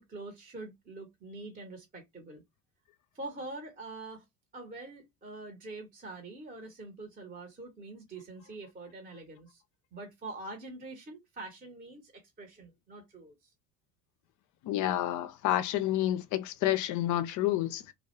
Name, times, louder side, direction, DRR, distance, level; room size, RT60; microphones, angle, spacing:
voice 1, 0.0-2.4 3.1-4.3 4.5-9.6 9.9-13.5, right 2 dB, 20° right, 0.8 m, -45 dB
voice 2, 14.6-17.9, left 13 dB, 40° left, 0.5 m, -29 dB
2.2 x 2.1 x 2.9 m
hypercardioid pair, 70°, 49 cm